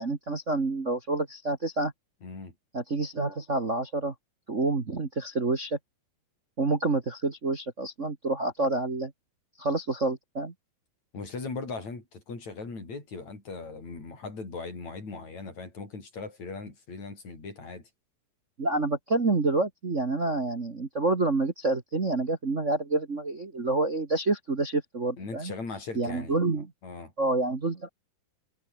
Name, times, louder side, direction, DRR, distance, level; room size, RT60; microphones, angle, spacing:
voice 1, 0.0-1.9 2.7-4.1 4.5-5.8 6.6-9.1 9.6-10.5 18.6-25.5 25.9-26.7 27.2-27.9, right 2 dB, 55° right, 0.8 m, -28 dB
voice 2, 2.2-2.6 11.1-17.9 25.2-26.4 26.8-27.1, left 4 dB, 40° left, 8.6 m, -39 dB
omnidirectional pair, 4.8 m